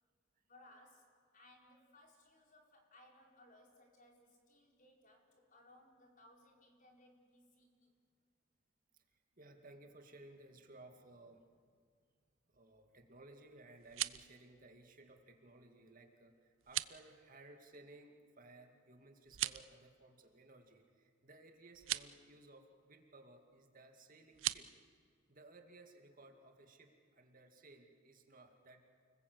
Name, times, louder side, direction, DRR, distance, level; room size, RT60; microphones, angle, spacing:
voice 1, 0.5-1.1 1.3-7.9, left 1 dB, 40° left, 1 dB, 4.5 m, -64 dB
voice 2, 8.9-11.6 12.5-24.7 25.3-28.8, right 2 dB, 45° right, 3 dB, 2.3 m, -59 dB
sound 1, 13.7-14.3 16.6-17.0 19.2-19.7 21.7-22.1 24.3-24.6, right 15 dB, 70° right, 0.6 m, -39 dB
29.5 x 20.5 x 8.2 m, 2.1 s
head